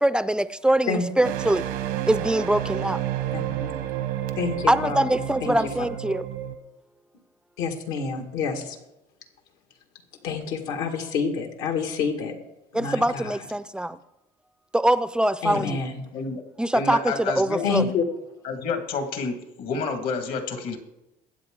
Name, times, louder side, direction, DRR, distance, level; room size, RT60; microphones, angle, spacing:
voice 1, 0.0-1.7 2.1-3.0 4.7-6.2 12.7-14.0 14.7-15.8 16.6-17.8, right 1 dB, 5° right, 0.3 m, -23 dB
voice 2, 0.9-1.3 3.3-3.7 4.4-5.6 7.6-8.8 10.2-12.3 12.7-13.4 15.4-16.0 17.6-18.0, left 5 dB, 90° left, 2.0 m, -28 dB
sound 1, 1.2-6.6, right 12 dB, 85° right, 1.0 m, -30 dB
voice 3, 16.7-17.9 18.4-20.8, left 4 dB, 70° left, 2.0 m, -29 dB
22.0 x 7.9 x 3.8 m
cardioid pair, 135°, 16 cm